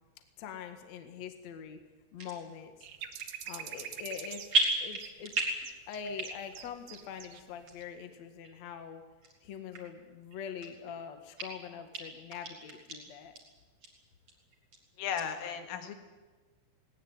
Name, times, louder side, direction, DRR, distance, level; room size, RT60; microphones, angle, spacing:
voice 1, 0.4-1.8 2.1-2.7 3.5-4.4 4.8-5.3 5.9-9.0 9.4-13.3, left 7 dB, 55° left, 6 dB, 2.1 m, -43 dB
sound 1, 2.2-2.4 3.0-3.5 3.8-4.2 4.5-5.7 6.0-6.5 6.9-7.0 7.7-7.8 8.4-8.5 9.2-9.3 9.7-9.8 10.3-11.0 11.4-11.5 11.9-12.0 12.3-13.0 13.3-13.4 13.8-13.9 14.3-14.8 15.2-15.3, right 3 dB, 35° right, 3.8 m, -33 dB
sound 2, 2.8-7.4 7.7-7.8, right 10 dB, 85° right, 1.8 m, -44 dB
voice 2, 15.0-16.0, left 8 dB, 80° left, 6 dB, 4.4 m, -35 dB
19.5 x 19.0 x 9.4 m, 1.3 s
omnidirectional pair, 5.8 m